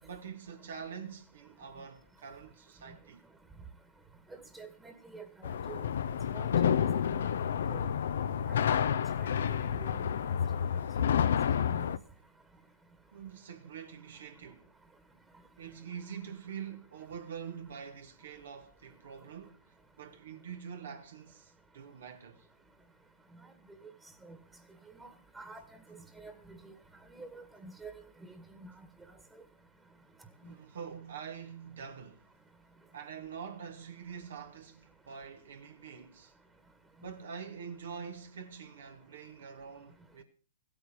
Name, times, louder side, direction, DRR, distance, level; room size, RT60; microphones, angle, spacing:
voice 1, 0.0-3.2 13.1-14.7 15.6-22.5 30.4-32.2 32.9-36.3 37.0-40.2, right 7 dB, 70° right, 2.5 m, -45 dB
voice 2, 4.3-5.9 6.3-6.5 7.7-7.8 8.7-10.1 11.6-11.9 24.2-24.4 25.0-25.1 25.4-25.6 25.9-26.7 27.2-27.9 28.2-28.3 28.6-28.7 30.4-30.5, right 3 dB, 15° right, 1.9 m, -48 dB
sound 1, 5.4-12.0, left 8 dB, 70° left, 0.8 m, -29 dB
15.5 x 8.8 x 7.4 m
hypercardioid pair, 120°, 0 cm